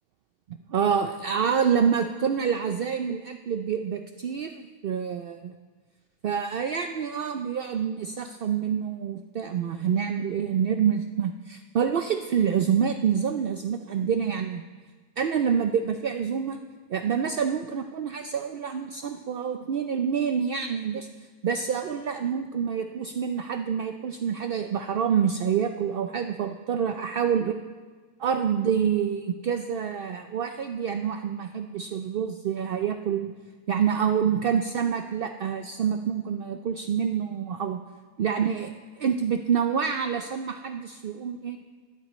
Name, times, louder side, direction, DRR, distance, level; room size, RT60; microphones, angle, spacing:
voice 1, 0.7-5.5 6.2-14.6 15.2-16.6 16.9-21.1 21.4-27.5 28.2-33.3 33.7-37.8 38.2-41.6, right 7 dB, 65° right, 6 dB, 0.5 m, -27 dB
20.5 x 13.0 x 3.1 m, 1.4 s
omnidirectional pair, 1.5 m